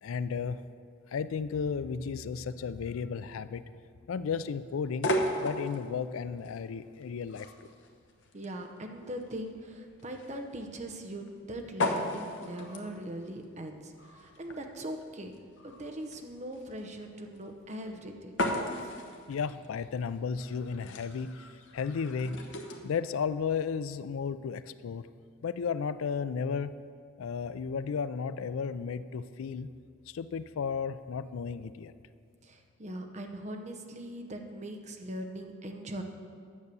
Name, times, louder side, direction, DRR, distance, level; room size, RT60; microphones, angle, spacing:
voice 1, 0.0-0.6 1.1-3.6 4.1-5.1 5.4-7.5 19.3-21.3 21.7-22.4 22.8-25.1 25.4-26.8 27.2-29.7 30.1-31.9, left 6 dB, 90° left, 14 dB, 0.4 m, -33 dB
sound 1, 4.8-22.8, left 1 dB, 65° left, 1.0 m, -37 dB
voice 2, 8.3-15.3 15.6-18.4 32.4-36.0, right 1 dB, 35° right, 4 dB, 0.8 m, -40 dB
9.6 x 6.6 x 6.9 m, 2.2 s
head